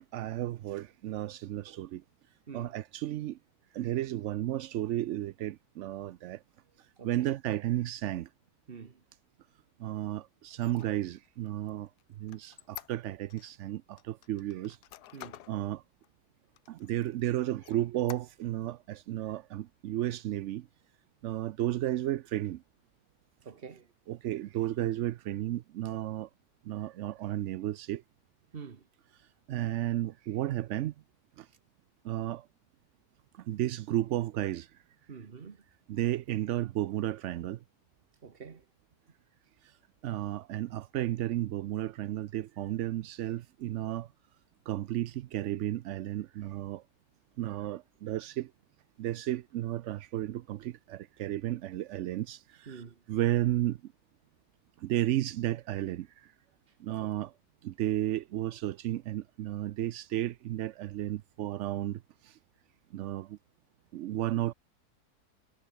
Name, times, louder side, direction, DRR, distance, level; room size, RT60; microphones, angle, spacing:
voice 1, 0.0-2.0 2.5-3.4 3.7-6.4 6.8-8.3 9.8-11.9 12.2-14.8 15.5-15.8 16.7-20.7 21.2-22.6 24.1-26.3 26.6-28.0 29.2-30.9 31.4-31.5 32.0-32.5 33.3-34.8 35.9-37.6 39.6-39.8 40.0-44.1 44.7-46.8 47.4-48.5 49.0-53.9 54.8-56.3 56.8-57.3 57.6-62.4 62.9-63.4 63.9-64.5, right 14 dB, 70° right, 0.7 m, -33 dB
voice 2, 7.0-7.3 8.7-9.0 15.1-15.4 23.4-23.9 28.5-28.9 35.1-35.6 38.2-38.6 52.7-53.0 57.0-57.1, right 6 dB, 40° right, 1.4 m, -46 dB
Squeak, 10.5-13.5 14.0-15.6 16.0-16.1 16.5-17.2 17.6-18.6, left 14 dB, 85° left, 1.3 m, -49 dB
omnidirectional pair, 1.7 m